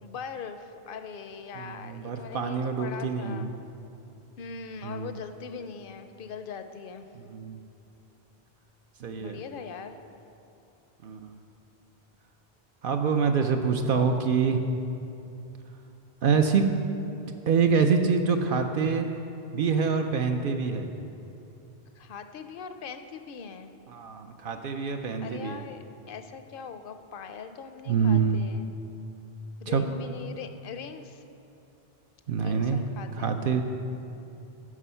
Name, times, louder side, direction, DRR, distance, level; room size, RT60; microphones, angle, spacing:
voice 1, 0.0-3.5 4.4-7.1 9.2-10.0 22.0-23.7 25.2-28.7 29.6-31.2 32.4-33.4, left 5 dB, 65° left, 8 dB, 0.7 m, -41 dB
voice 2, 1.6-3.5 4.8-5.1 7.3-7.6 9.0-9.4 11.0-11.4 12.8-14.7 16.2-16.7 17.5-19.1 19.5-20.9 23.9-25.6 27.9-28.4 29.7-29.8 32.3-32.8 33.2-33.6, right 5 dB, 65° right, 5 dB, 0.7 m, -25 dB
9.7 x 6.1 x 5.6 m, 2.8 s
omnidirectional pair, 1.0 m